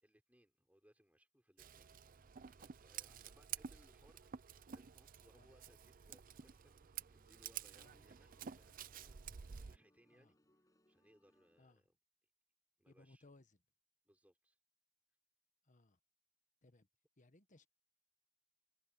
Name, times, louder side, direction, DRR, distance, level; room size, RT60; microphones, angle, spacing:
voice 1, 0.0-2.2 2.5-10.4 10.9-11.9 12.8-13.3 14.0-14.6, equal, 10° right, 5.7 m, -71 dB
Scissors, 1.6-9.8, right 8 dB, 45° right, 0.5 m, -51 dB
sound 1, 6.5-11.6, left 1 dB, 15° left, 7.6 m, -76 dB
voice 2, 12.9-13.6 15.6-16.0 16.6-16.9 17.2-17.7, left 2 dB, 40° left, 1.4 m, -66 dB
head